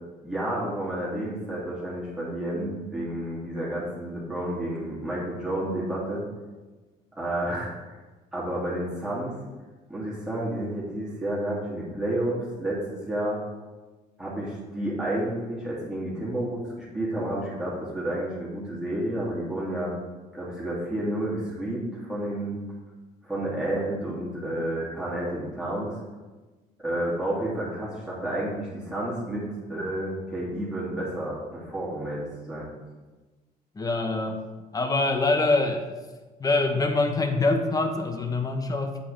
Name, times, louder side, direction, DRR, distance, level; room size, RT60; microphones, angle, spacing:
voice 1, 0.2-6.2 7.2-7.7 8.3-9.4 9.9-13.4 14.2-19.9 20.3-22.6 23.2-26.0 26.8-32.7, right 1 dB, 5° right, -8 dB, 2.7 m, -30 dB
voice 2, 33.8-34.4 34.7-35.9 36.4-39.0, left 3 dB, 20° left, 5 dB, 1.1 m, -24 dB
8.3 x 8.2 x 3.4 m, 1.3 s
cardioid pair, 110°, 17 cm